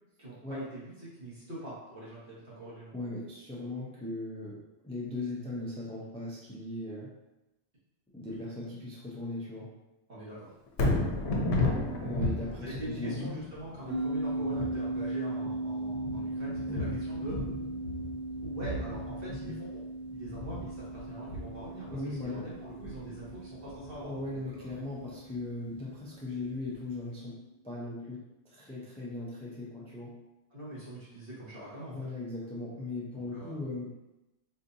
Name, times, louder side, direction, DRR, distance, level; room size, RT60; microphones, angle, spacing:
voice 1, 0.2-2.9 10.1-10.5 12.6-17.4 18.4-19.7 20.1-24.8 30.5-32.0 33.1-33.6, right 1 dB, 55° right, -10 dB, 1.8 m, -43 dB
voice 2, 2.9-7.1 8.1-9.7 12.0-13.4 16.7-17.0 19.3-19.6 21.9-22.5 24.0-27.4 27.6-30.1 31.9-33.9, left 2 dB, 10° left, -5 dB, 0.4 m, -38 dB
Thunder, 10.7-24.9 25.3-25.4, left 2 dB, 70° left, 0.9 m, -35 dB
sound 1, 13.9-26.6, right 2 dB, 75° right, 1.4 m, -38 dB
4.4 x 2.7 x 2.6 m, 0.96 s
omnidirectional pair, 1.2 m